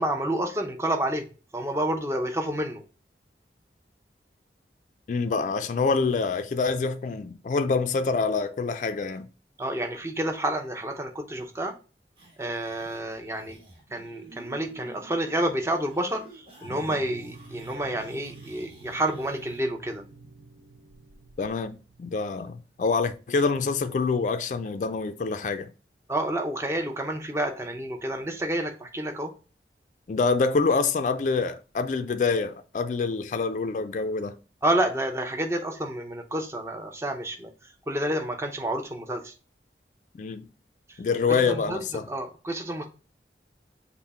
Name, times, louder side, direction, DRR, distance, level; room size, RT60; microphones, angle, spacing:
voice 1, 0.0-2.8 9.6-11.7 12.4-13.6 13.9-20.0 26.1-29.3 34.6-39.3 40.9-41.0 41.3-42.8, right 1 dB, 15° right, 0.5 m, -29 dB
voice 2, 5.1-9.3 21.4-25.7 30.1-34.4 40.1-40.5 41.0-42.1, left 4 dB, 45° left, 0.3 m, -26 dB
sound 1, 12.2-19.6, right 3 dB, 30° right, 1.3 m, -51 dB
sound 2, 16.6-22.5, right 3 dB, 65° right, 0.6 m, -48 dB
5.7 x 2.1 x 4.1 m
head